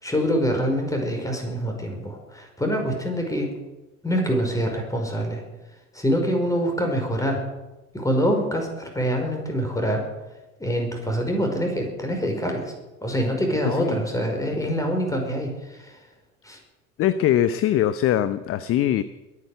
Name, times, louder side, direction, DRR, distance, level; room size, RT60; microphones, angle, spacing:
voice 1, 0.0-3.5 4.0-5.4 6.0-7.4 7.9-10.0 10.6-12.7 13.0-15.5 15.8-15.9 16.5-16.6, equal, 5° left, 2 dB, 5.3 m, -25 dB
voice 2, 13.6-14.0 17.0-19.0, left 11 dB, 30° left, 15 dB, 0.7 m, -22 dB
22.0 x 9.7 x 6.7 m, 1.1 s
figure-of-eight pair, 85°, 45 cm